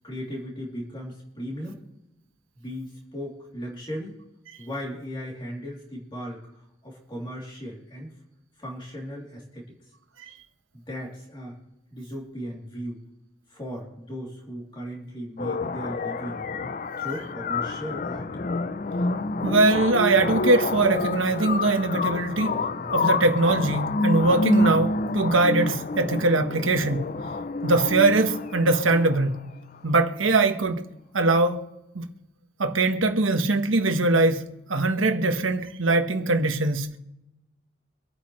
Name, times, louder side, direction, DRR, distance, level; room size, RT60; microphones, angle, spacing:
voice 1, 0.0-1.8 2.6-4.2 4.6-6.4 6.8-8.1 8.6-9.6 10.7-11.6 11.9-13.0 13.5-16.4 17.0-18.3 22.5-22.9 24.6-24.7, equal, 25° left, 3.1 m, -37 dB
sound 1, 15.4-29.4, left 2 dB, 40° left, 0.5 m, -28 dB
voice 2, 19.4-22.6 22.9-27.0 27.6-29.4 29.8-30.8 31.1-31.6 31.9-32.1 32.6-36.9, right 2 dB, 90° right, 1.2 m, -22 dB
25.0 x 8.7 x 3.2 m
head